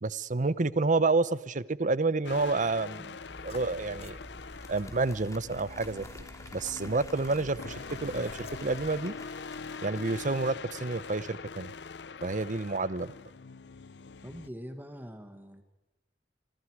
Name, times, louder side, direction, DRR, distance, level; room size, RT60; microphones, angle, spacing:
voice 1, 0.0-3.2 3.4-4.2 4.7-6.0 6.5-9.1 9.8-11.7 12.2-13.1, right 3 dB, 45° right, 18 dB, 0.8 m, -29 dB
sound 1, 2.2-14.5, left 5 dB, 75° left, 0.7 m, -43 dB
sound 2, 3.2-9.0, left 1 dB, 35° left, 1.9 m, -49 dB
Applause, 4.4-11.3, left 2 dB, 20° left, 3.0 m, -52 dB
voice 2, 14.2-15.6, equal, 10° right, 8 dB, 1.6 m, -43 dB
27.0 x 25.5 x 4.8 m, 1.1 s
head